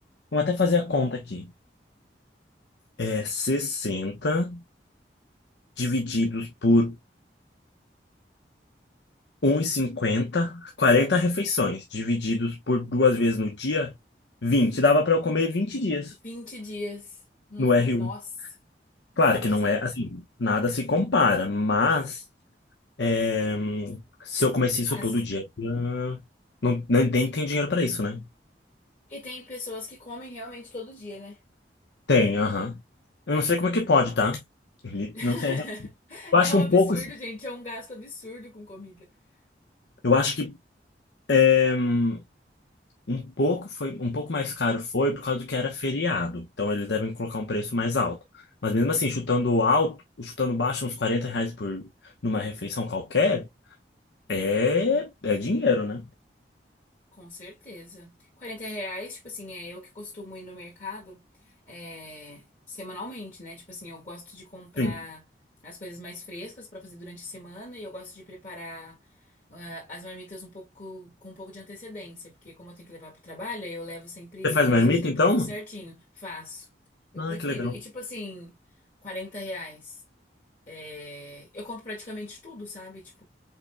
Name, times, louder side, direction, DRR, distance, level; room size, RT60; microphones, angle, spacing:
voice 1, 0.3-1.5 3.0-4.6 5.8-7.0 9.4-13.9 14.4-16.1 17.6-18.1 19.2-22.2 23.0-26.2 26.6-28.3 32.1-32.8 33.3-34.4 34.8-35.6 36.3-37.0 40.0-40.6 41.3-42.2 43.1-48.2 48.6-51.9 52.2-53.5 54.3-56.1 64.8-64.9 74.4-75.5 77.2-77.7, left 3 dB, 85° left, 0.9 m, -24 dB
voice 2, 16.2-17.2 17.5-18.3 19.4-19.8 24.9-25.1 29.1-31.4 35.1-39.1 57.1-65.2 65.6-69.0 69.5-76.7 77.1-78.6 79.0-80.0 80.7-83.2, left 2 dB, 45° left, 1.8 m, -40 dB
5.8 x 4.0 x 2.2 m
head